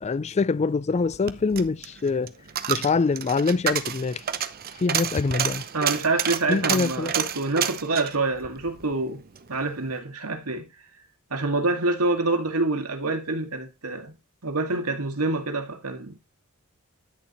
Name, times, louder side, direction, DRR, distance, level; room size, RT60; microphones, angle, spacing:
voice 1, 0.0-2.3 2.7-4.2 4.7-5.7 6.5-7.2, left 4 dB, 30° left, 0.4 m, -24 dB
Coin (dropping), 1.0-9.5 9.8-9.9, right 9 dB, 45° right, 0.8 m, -30 dB
voice 2, 5.7-9.2 9.5-10.7 11.3-14.2 14.4-16.2, right 3 dB, 90° right, 2.1 m, -26 dB
10.5 x 6.9 x 3.1 m
head